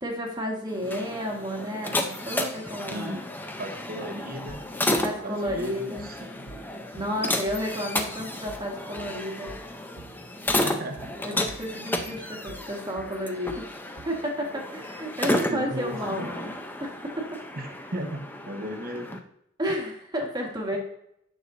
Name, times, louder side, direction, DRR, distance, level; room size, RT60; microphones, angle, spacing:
voice 1, 0.0-3.2 5.0-6.1 6.9-9.6 11.2-13.7 14.0-16.5 16.8-17.4 19.6-20.8, equal, 20° right, 0 dB, 1.5 m, -32 dB
sound 1, 0.7-19.2, left 1 dB, 10° left, 0.6 m, -32 dB
voice 2, 2.9-3.3 3.6-4.6 5.2-6.5 10.6-11.1 11.7-11.8 15.2-16.3 17.6-19.2, right 1 dB, 50° right, 5 dB, 1.1 m, -36 dB
sound 2, 4.5-14.3, right 3 dB, 75° right, 0.6 m, -47 dB
9.5 x 6.2 x 2.6 m, 0.75 s
head